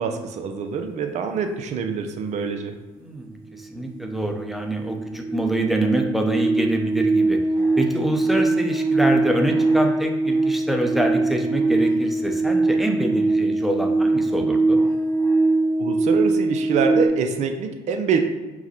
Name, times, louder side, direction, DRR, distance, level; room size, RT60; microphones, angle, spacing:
voice 1, 0.0-2.7 15.8-18.2, right 6 dB, 60° right, 6 dB, 0.6 m, -25 dB
voice 2, 3.0-7.4 7.8-14.8, right 1 dB, ahead, 3 dB, 0.7 m, -26 dB
sound 1, 3.5-3.6 3.9-17.1, right 2 dB, 75° right, 1.1 m, -22 dB
4.7 x 2.2 x 4.2 m, 1.2 s
hypercardioid pair, 55°, 14 cm